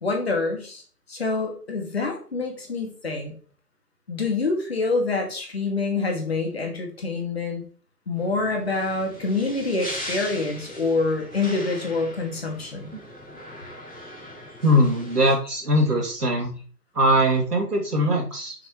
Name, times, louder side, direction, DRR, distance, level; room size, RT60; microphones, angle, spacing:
voice 1, 0.0-0.8 1.1-3.3 4.1-7.6 8.1-12.9, left 3 dB, 40° left, 2 dB, 2.1 m, -26 dB
sound 1, 8.1-15.3, left 1 dB, ahead, 2.2 m, -39 dB
voice 2, 14.6-16.5 16.9-18.5, equal, 70° right, 0 dB, 2.8 m, -21 dB
7.4 x 6.7 x 3.1 m, 0.42 s
figure-of-eight pair, 155°, 48 cm